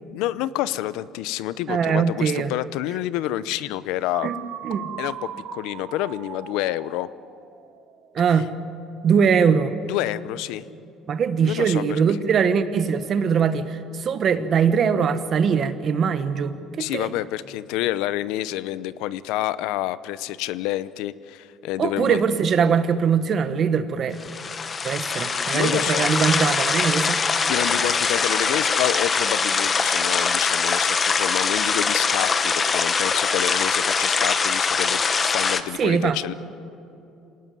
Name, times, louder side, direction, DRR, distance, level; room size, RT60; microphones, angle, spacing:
voice 1, 0.1-4.3 5.0-7.1 9.8-10.7 11.4-12.0 16.8-22.2 25.5-26.1 27.5-36.3, left 14 dB, 85° left, 16 dB, 0.7 m, -28 dB
voice 2, 1.7-2.5 4.2-4.4 4.6-4.8 8.1-8.5 9.0-9.7 11.1-17.1 21.8-24.2 24.8-27.2 35.8-36.2, right 6 dB, 35° right, 11 dB, 1.2 m, -21 dB
sound 1, 4.1-8.0, right 10 dB, 55° right, 1.3 m, -38 dB
sound 2, 24.2-35.6, left 5 dB, 25° left, 0.9 m, -22 dB
27.0 x 18.5 x 9.4 m, 2.8 s
cardioid pair, 165°, 0 cm